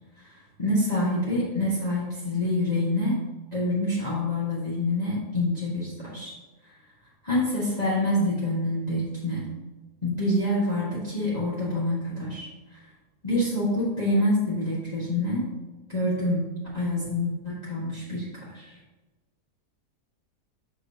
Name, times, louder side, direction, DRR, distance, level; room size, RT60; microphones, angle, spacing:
voice 1, 0.2-3.2 3.5-6.3 7.2-9.4 10.0-12.8 13.2-15.5 15.9-16.5 16.7-18.7, left 1 dB, 25° left, -9 dB, 1.6 m, -26 dB
7.2 x 6.5 x 2.8 m, 1.2 s
omnidirectional pair, 1.7 m